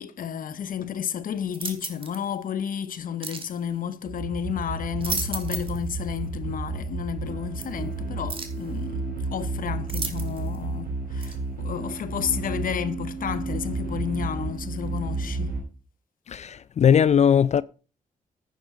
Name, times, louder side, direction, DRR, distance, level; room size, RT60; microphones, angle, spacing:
voice 1, 0.0-15.6, left 8 dB, 65° left, 0.8 m, -32 dB
sound 1, 1.5-2.2 3.2-3.5 4.8-5.8 6.2-6.3 7.6-7.7 8.3-8.6 9.9-10.6 11.2-11.4, right 4 dB, 35° right, 1.9 m, -34 dB
sound 2, 4.1-15.6, right 3 dB, 80° right, 3.8 m, -32 dB
voice 2, 16.3-17.6, left 8 dB, 50° left, 0.4 m, -19 dB
9.9 x 9.4 x 3.7 m
cardioid pair, 65°, 15 cm